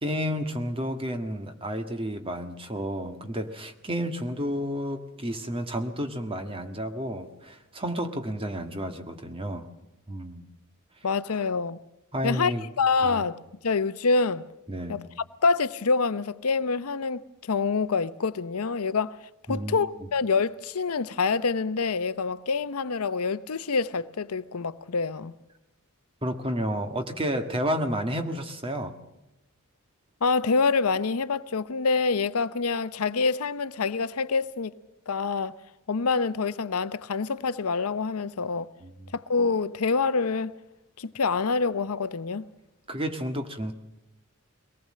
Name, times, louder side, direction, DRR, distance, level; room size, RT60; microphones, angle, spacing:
voice 1, 0.0-9.7 10.1-10.4 12.1-12.7 13.0-13.2 14.7-15.0 19.5-19.8 26.2-28.9 38.8-39.1 42.9-43.7, equal, 25° right, 1.7 m, -31 dB
voice 2, 11.0-11.8 12.2-13.4 13.6-14.4 14.9-15.0 15.4-25.3 30.2-34.7 35.1-35.6 35.9-38.7 39.1-40.5 41.0-42.5, left 4 dB, 80° left, 0.8 m, -26 dB
22.5 x 18.5 x 7.6 m
head